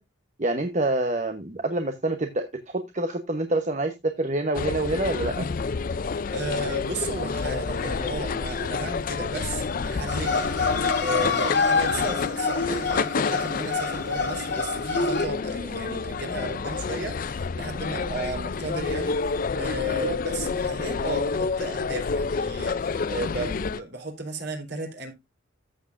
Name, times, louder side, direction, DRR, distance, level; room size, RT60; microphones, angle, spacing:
voice 1, 0.4-5.5, right 2 dB, 35° right, 1.0 m, -27 dB
sound 1, 4.5-23.8, left 4 dB, 45° left, 0.4 m, -29 dB
voice 2, 6.3-10.5 11.0-25.1, right 1 dB, 55° right, 3.7 m, -34 dB
sound 2, 10.1-15.3, left 4 dB, 60° left, 1.7 m, -26 dB
14.0 x 7.4 x 2.5 m
head